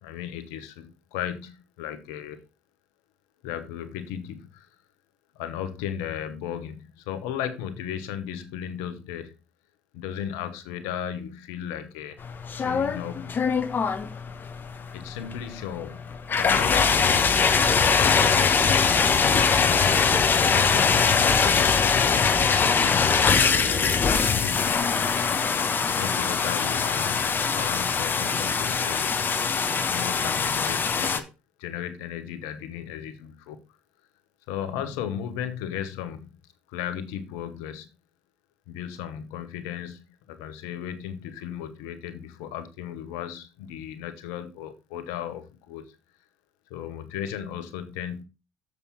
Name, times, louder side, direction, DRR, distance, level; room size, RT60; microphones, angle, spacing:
voice 1, 0.0-2.4 3.4-4.7 5.3-9.3 9.9-12.2 12.5-13.3 14.9-16.1 16.4-17.6 18.0-18.6 19.2-20.2 20.5-22.2 22.6-24.8 25.9-29.1 29.8-31.3 31.6-33.6 34.5-36.3 36.7-37.9 38.7-45.8 46.7-48.2, left 9 dB, 80° left, 1.2 m, -35 dB
sound 1, 12.2-31.2, left 5 dB, 40° left, 1.1 m, -22 dB
7.2 x 6.8 x 4.4 m
hypercardioid pair, 60°, 5 cm